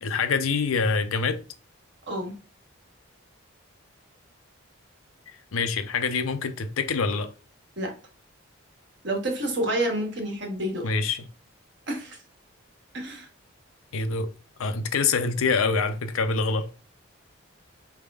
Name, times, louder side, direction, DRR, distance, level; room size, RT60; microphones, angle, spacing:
voice 1, 0.0-1.4 5.5-7.3 10.8-11.2 13.9-14.3 14.6-16.7, left 4 dB, 85° left, 0.6 m, -25 dB
voice 2, 9.0-10.9 11.9-12.2 12.9-13.3, right 1 dB, 55° right, 1.3 m, -29 dB
4.1 x 3.5 x 2.3 m
head